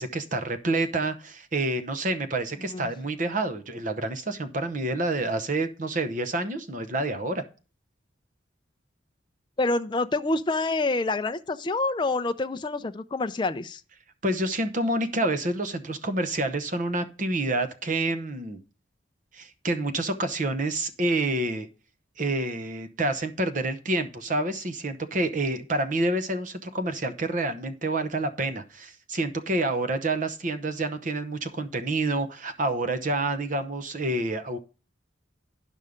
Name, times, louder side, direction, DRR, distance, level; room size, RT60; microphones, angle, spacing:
voice 1, 0.0-7.5 14.2-18.6 19.3-21.7 22.2-34.6, right 2 dB, 40° right, 0.8 m, -28 dB
voice 2, 9.6-13.8, left 2 dB, 25° left, 0.4 m, -27 dB
11.0 x 5.4 x 5.0 m
head